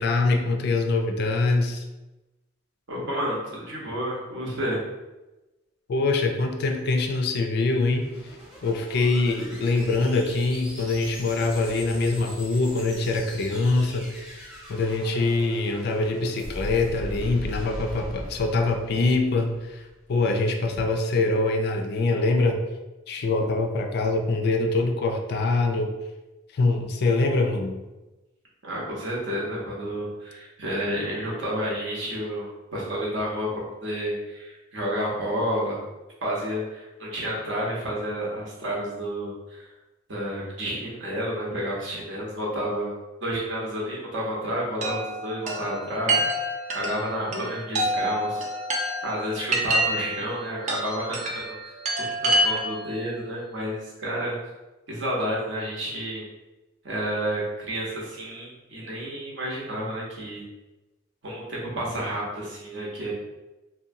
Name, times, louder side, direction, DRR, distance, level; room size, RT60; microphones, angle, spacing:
voice 1, 0.0-1.8 5.9-8.1 8.6-19.8 20.1-22.6 23.1-25.9 26.5-27.8, left 3 dB, 55° left, 4 dB, 0.3 m, -24 dB
voice 2, 2.9-4.9 28.6-35.8 36.2-39.7 40.1-42.9 43.2-48.4 49.0-51.6 52.2-54.4 54.9-56.2 56.8-60.4 61.2-63.1, equal, 65° right, -4 dB, 0.8 m, -30 dB
sound 1, 7.8-20.0, equal, 5° right, 0.7 m, -40 dB
Chime, 44.8-52.9, right 1 dB, 35° right, 0.4 m, -27 dB
2.7 x 2.2 x 2.6 m, 1.1 s
head